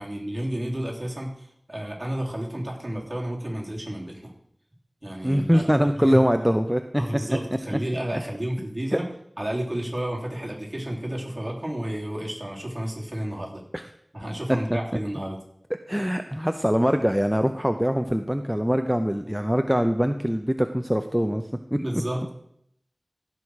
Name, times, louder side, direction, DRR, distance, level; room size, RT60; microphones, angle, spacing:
voice 1, 0.0-4.3 5.0-5.7 6.0-6.2 7.0-9.0 9.4-13.6 14.1-15.4 21.8-22.3, right 1 dB, 30° right, -2 dB, 3.3 m, -31 dB
voice 2, 5.2-7.0 7.7-7.8 13.7-13.8 14.7-14.8 15.9-21.4 21.7-21.8, equal, 5° right, 7 dB, 0.6 m, -23 dB
16.0 x 6.3 x 4.9 m, 0.72 s
wide cardioid pair, 40°, 0 cm